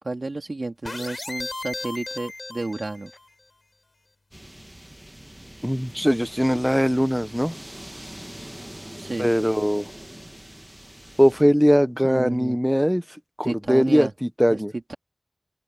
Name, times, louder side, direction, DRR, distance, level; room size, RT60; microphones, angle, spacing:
voice 1, 0.0-3.1 9.0-9.3 12.0-12.6 13.4-14.1 14.5-14.6 14.9-15.0, right 2 dB, 80° right, 3.3 m, -31 dB
sound 1, 0.8-3.3, left 2 dB, 80° left, 3.8 m, -35 dB
sound 2, 4.3-11.4, right 1 dB, 20° right, 1.2 m, -42 dB
voice 2, 5.6-7.6 9.2-9.9 11.2-13.0 13.4-14.7, equal, ahead, 0.7 m, -20 dB
open air
wide cardioid pair, 40°, 0 cm